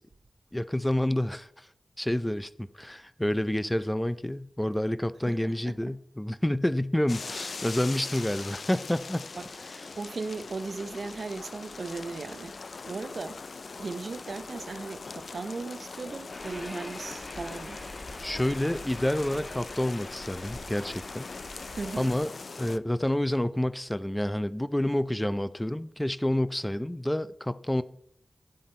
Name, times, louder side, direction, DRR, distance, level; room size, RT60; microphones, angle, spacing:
voice 1, 0.5-1.7 2.0-9.3 18.2-21.3 22.0-22.3 22.6-27.8, left 1 dB, 10° left, 0.5 m, -28 dB
voice 2, 5.3-6.0 9.4-9.5 10.0-12.6 12.9-13.4 13.8-17.8 21.8-22.1, right 3 dB, 70° right, 0.6 m, -37 dB
sound 1, 7.1-22.8, left 4 dB, 70° left, 0.4 m, -41 dB
sound 2, 16.3-22.2, left 1 dB, 40° left, 1.9 m, -44 dB
10.0 x 7.7 x 4.3 m
wide cardioid pair, 75°, 0 cm